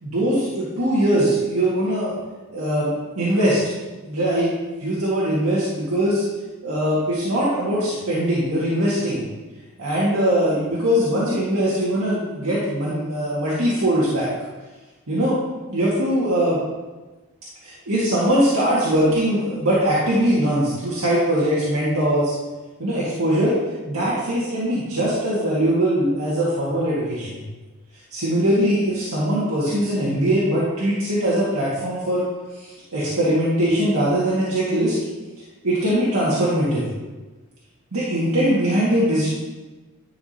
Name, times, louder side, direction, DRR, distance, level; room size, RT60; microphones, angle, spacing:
voice 1, 0.0-2.1 2.5-3.6 4.0-4.5 4.8-6.2 6.6-9.2 9.8-14.3 15.1-15.4 15.7-16.6 17.6-22.3 22.8-23.6 23.9-27.4 28.1-32.2 32.6-34.9 35.6-36.9 37.9-39.3, equal, 85° right, -9 dB, 1.9 m, -21 dB
10.5 x 6.0 x 2.8 m, 1.2 s
head